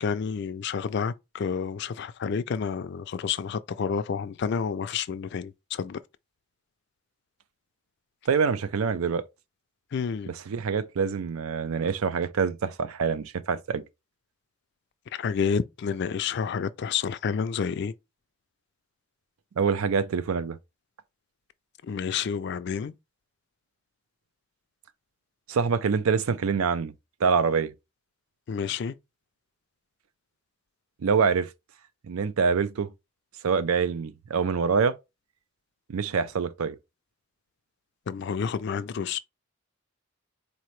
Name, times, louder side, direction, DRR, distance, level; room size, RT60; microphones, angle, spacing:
voice 1, 0.0-6.0 9.9-10.3 15.1-17.9 21.8-22.9 28.5-29.0 38.1-39.2, left 6 dB, 55° left, 0.3 m, -29 dB
voice 2, 8.3-9.2 10.3-13.8 19.6-20.6 25.5-26.9 27.2-27.7 31.0-31.5 32.1-32.9 33.4-35.0 35.9-36.8, right 5 dB, 90° right, 0.5 m, -25 dB
4.2 x 2.8 x 3.1 m
head